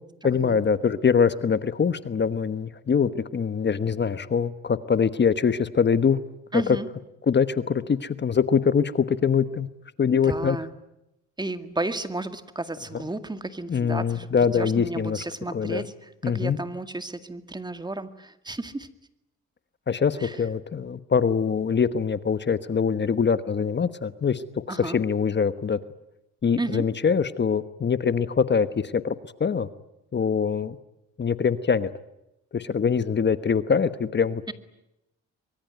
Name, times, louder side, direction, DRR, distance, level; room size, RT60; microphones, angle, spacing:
voice 1, 0.2-6.2 6.5-6.8 7.3-9.7 10.0-10.6 13.7-15.2 15.5-15.8 16.2-16.6 19.9-24.4 24.7-25.8 26.4-29.1 29.4-29.7 30.1-30.8 31.2-31.9 32.5-34.4, left 6 dB, 35° left, 13 dB, 1.2 m, -23 dB
voice 2, 6.5-6.9 10.1-10.7 11.4-18.9 20.2-20.4 24.7-25.0 26.6-26.8 34.5-34.6, right 2 dB, 15° right, 9 dB, 2.1 m, -33 dB
24.0 x 23.5 x 9.3 m, 0.88 s
cardioid pair, 90°, 30 cm